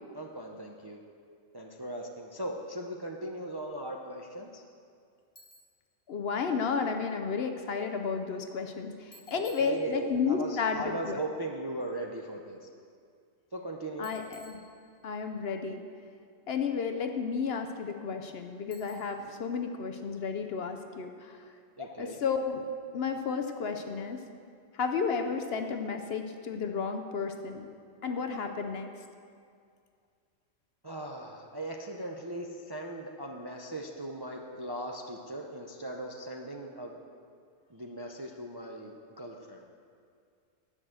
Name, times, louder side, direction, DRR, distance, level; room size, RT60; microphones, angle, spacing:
voice 1, 0.1-1.0 1.5-4.6 9.3-12.6 13.5-14.1 21.8-22.2 30.8-37.0 37.7-39.7, right 1 dB, 30° right, 1 dB, 0.5 m, -38 dB
Bicycle, 5.4-5.9 9.1-10.3 14.0-15.3 18.7-19.4, equal, 20° left, 1.0 m, -56 dB
voice 2, 6.1-11.2 14.0-14.6 15.0-15.8 16.5-21.4 21.8-22.6 22.9-24.2 24.7-27.7 28.0-28.9, left 5 dB, 60° left, 6 dB, 0.8 m, -32 dB
10.5 x 6.2 x 7.6 m, 2.3 s
omnidirectional pair, 1.3 m